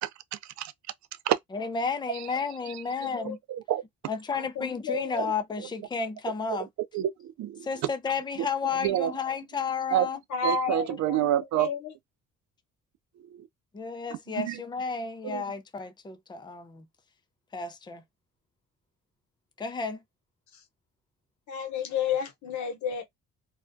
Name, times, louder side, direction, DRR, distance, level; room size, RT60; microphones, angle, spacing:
voice 1, 0.0-0.7 1.3-1.4 3.5-3.8 6.9-7.7 8.8-9.1 9.9-10.1 10.4-11.7 13.4-13.5 14.4-14.6 15.2-15.4, right 12 dB, 65° right, 0.5 m, -28 dB
voice 2, 1.5-3.4 4.1-6.7 7.6-10.2 13.7-16.9 17.5-18.0 19.6-20.0, left 5 dB, 15° left, 0.5 m, -32 dB
voice 3, 3.0-3.3 4.4-5.2 10.3-11.9 20.5-20.6 21.5-23.0, left 6 dB, 70° left, 0.9 m, -32 dB
2.3 x 2.2 x 2.5 m
cardioid pair, 90°, 30 cm